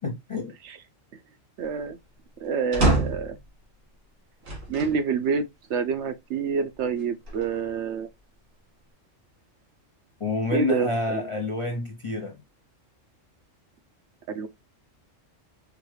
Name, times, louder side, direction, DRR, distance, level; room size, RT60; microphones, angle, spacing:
voice 1, 0.0-0.5 10.2-12.4, left 3 dB, 35° left, 0.5 m, -28 dB
voice 2, 1.6-2.0 2.4-3.4 4.7-8.1 10.5-11.3 14.3-14.5, right 5 dB, 70° right, 0.8 m, -27 dB
sound 1, 2.7-3.4 4.4-5.0 5.6-5.7 7.0-7.7, right 2 dB, 85° right, 2.3 m, -26 dB
4.8 x 2.3 x 3.1 m
omnidirectional pair, 1.3 m